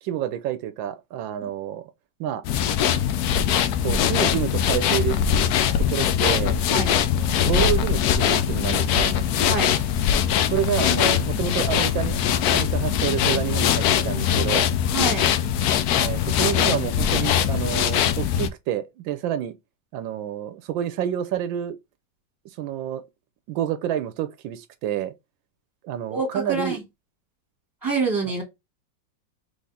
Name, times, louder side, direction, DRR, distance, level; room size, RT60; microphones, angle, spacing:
voice 1, 0.0-1.8 2.2-2.4 3.8-5.2 5.9-6.6 7.2-9.1 10.5-14.7 15.9-19.5 19.9-21.8 22.6-23.0 23.5-25.1 25.8-26.8, right 10 dB, 85° right, 1.3 m, -28 dB
sound 1, 2.4-18.5, left 9 dB, 70° left, 0.9 m, -22 dB
voice 2, 9.4-9.7 14.9-15.3 26.1-26.8 27.8-28.4, right 3 dB, 10° right, 2.3 m, -26 dB
4.1 x 3.5 x 3.5 m
omnidirectional pair, 2.0 m